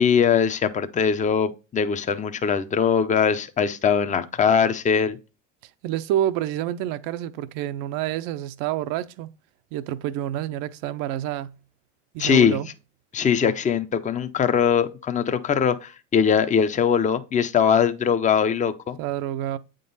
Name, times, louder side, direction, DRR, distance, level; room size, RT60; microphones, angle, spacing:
voice 1, 0.0-5.2 12.2-12.6 13.1-19.0, left 7 dB, 20° left, 0.6 m, -21 dB
voice 2, 5.8-9.3 9.7-11.5 12.1-12.7 19.0-19.6, right 12 dB, 65° right, 0.6 m, -28 dB
8.4 x 3.8 x 4.0 m
supercardioid pair, 90°, 38 cm